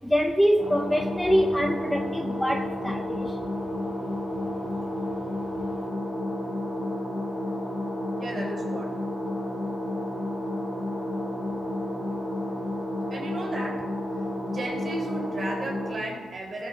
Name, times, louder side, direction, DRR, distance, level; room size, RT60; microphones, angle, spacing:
voice 1, 0.0-3.4, equal, 5° left, 4 dB, 0.6 m, -24 dB
sound 1, 0.6-15.9, left 1 dB, 75° left, 4.2 m, -31 dB
voice 2, 8.2-8.9 13.1-13.9 14.5-16.7, right 2 dB, 35° right, -2 dB, 3.8 m, -34 dB
18.0 x 7.0 x 4.0 m, 1.4 s
cardioid pair, 120°, 0 cm